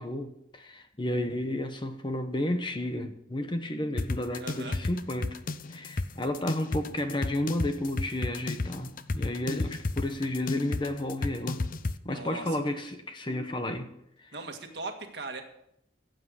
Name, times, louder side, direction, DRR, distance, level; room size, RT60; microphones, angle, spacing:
voice 1, 0.0-5.4 5.7-11.7 12.0-13.9 14.2-14.3, left 1 dB, 25° left, 1.0 m, -32 dB
sound 1, 4.0-12.0, left 2 dB, 45° left, 0.6 m, -32 dB
voice 2, 4.4-4.8 12.1-12.6 14.3-15.4, right 3 dB, 65° right, 1.8 m, -39 dB
15.5 x 7.8 x 6.4 m
head